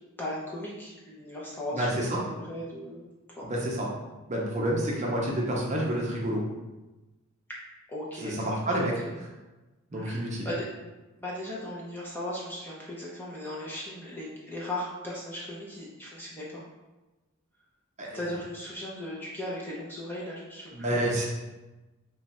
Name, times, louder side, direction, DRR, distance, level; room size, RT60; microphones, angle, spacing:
voice 1, 0.2-3.0 3.4-3.6 7.9-9.1 9.9-10.7 11.2-16.6 18.1-21.0, left 1 dB, 10° left, -5 dB, 0.5 m, -37 dB
voice 2, 1.7-2.2 3.4-3.9 4.3-6.4 8.2-9.0 9.9-10.5 18.0-18.2 20.7-21.3, right 1 dB, 30° right, -3 dB, 0.6 m, -28 dB
3.0 x 2.4 x 4.1 m, 1.1 s
head